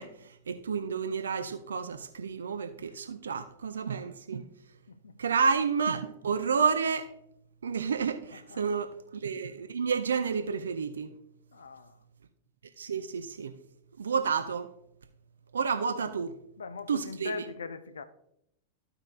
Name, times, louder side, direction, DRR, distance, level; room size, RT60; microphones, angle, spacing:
voice 1, 0.0-4.5 5.2-7.1 7.6-11.1 12.8-13.6 14.0-14.7 15.5-16.3 16.9-17.3, right 6 dB, 70° right, 0.5 m, -30 dB
voice 2, 4.9-5.2 8.3-8.6 11.5-12.0 16.6-18.0, left 4 dB, 70° left, 0.6 m, -41 dB
14.0 x 4.9 x 2.4 m
figure-of-eight pair, 90°, 0 cm